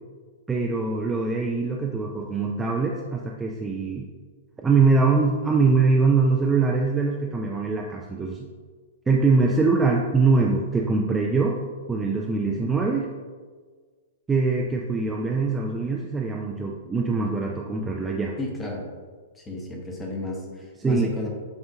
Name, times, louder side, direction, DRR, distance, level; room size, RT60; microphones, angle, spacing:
voice 1, 0.5-4.1 4.6-8.5 9.1-11.6 11.9-13.1 14.3-18.4 20.8-21.1, right 4 dB, 10° right, -1 dB, 0.3 m, -23 dB
voice 2, 18.4-18.8 19.3-21.3, left 2 dB, 15° left, -1 dB, 0.8 m, -33 dB
7.0 x 2.4 x 2.7 m, 1.5 s
figure-of-eight pair, 105°, 0 cm